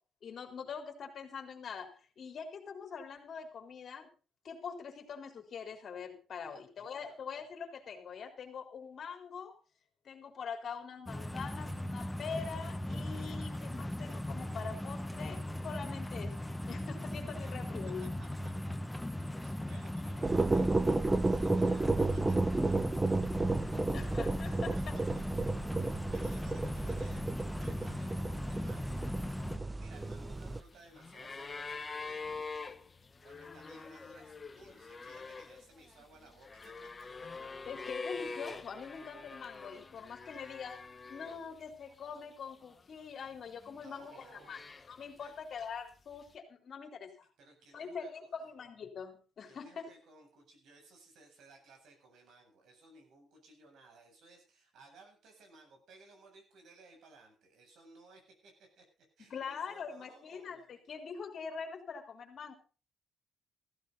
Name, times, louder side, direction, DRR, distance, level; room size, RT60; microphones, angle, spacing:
voice 1, 0.2-4.1 4.4-9.5 10.0-16.3 16.7-18.1 23.9-25.0 37.7-40.8 41.1-44.6 44.9-47.1 47.7-49.9 59.3-62.5, left 6 dB, 55° left, 4 dB, 3.8 m, -44 dB
sound 1, 11.1-29.6, left 1 dB, 5° left, 1.1 m, -39 dB
voice 2, 18.0-22.9 24.4-24.8 25.9-28.9 29.2-29.5 29.7-32.5 33.2-36.8 40.0-40.1 43.7-44.6 45.2-45.3 47.4-48.3 49.5-58.8 59.2-60.7, right 2 dB, 75° right, 2 dB, 7.9 m, -59 dB
sound 2, 20.2-30.6, right 3 dB, 20° right, 0.9 m, -32 dB
sound 3, 29.9-41.6 41.9-42.8 43.5-45.2 46.3-46.4, left 4 dB, 30° left, 1.2 m, -45 dB
15.0 x 15.0 x 4.1 m, 0.36 s
cardioid pair, 90°, 0 cm